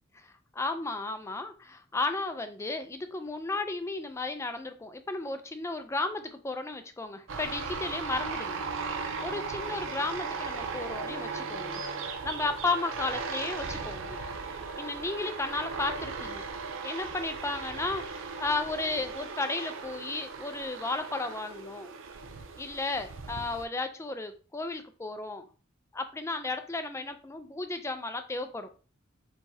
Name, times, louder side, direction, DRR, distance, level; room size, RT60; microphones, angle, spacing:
voice 1, 0.5-8.6 9.2-11.8 12.2-14.2 14.8-16.4 16.8-21.9 22.6-25.5 25.9-28.7, left 3 dB, 15° left, 8 dB, 0.4 m, -34 dB
sound 1, 7.3-23.6, right 4 dB, 65° right, 0.5 m, -37 dB
4.7 x 4.1 x 2.7 m, 0.37 s
head